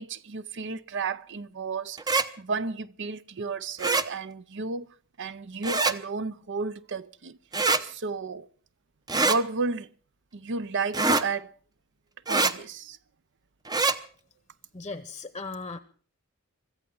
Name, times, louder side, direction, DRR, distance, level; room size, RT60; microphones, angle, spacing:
voice 1, 0.0-2.0 2.4-4.9 5.2-7.4 7.8-8.5 9.1-9.9 10.3-11.5 12.3-13.0, right 4 dB, 55° right, 0.7 m, -32 dB
sound 1, 2.0-2.3 3.8-4.1 5.6-6.0 7.5-7.8 9.1-9.4 10.9-11.3 12.3-12.5 13.7-14.0, right 3 dB, 20° right, 0.7 m, -24 dB
voice 2, 14.7-15.8, left 3 dB, 20° left, 0.8 m, -37 dB
25.0 x 14.5 x 3.9 m
head